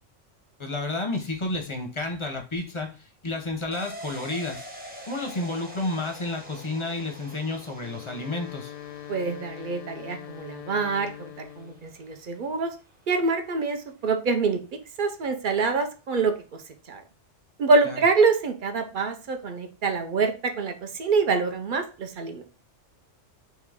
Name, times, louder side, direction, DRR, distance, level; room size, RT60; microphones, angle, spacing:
voice 1, 0.6-4.6 5.1-8.7 17.9-18.0, left 2 dB, 35° left, 3 dB, 0.6 m, -31 dB
sound 1, 3.7-13.1 13.4-13.5, right 1 dB, 10° right, 0.7 m, -45 dB
Wind instrument woodwind instrument, 7.8-11.9, left 12 dB, 80° left, 1.0 m, -42 dB
voice 2, 9.1-12.7 13.1-14.6 15.0-16.3 16.9-17.0 17.6-22.4, right 4 dB, 55° right, 7 dB, 0.6 m, -25 dB
3.7 x 3.0 x 3.4 m, 0.34 s
omnidirectional pair, 1.3 m